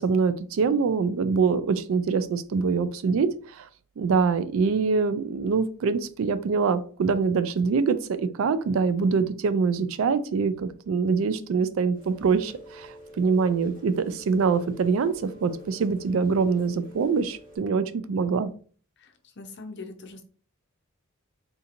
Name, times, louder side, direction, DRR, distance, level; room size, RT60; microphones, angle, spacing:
voice 1, 0.0-3.7 4.0-18.5, right 5 dB, 65° right, 13 dB, 0.3 m, -24 dB
Rain, 11.9-17.6, equal, 40° right, 1.0 m, -48 dB
voice 2, 19.0-20.2, left 3 dB, 50° left, 6 dB, 0.6 m, -42 dB
3.8 x 2.8 x 2.5 m, 0.42 s
head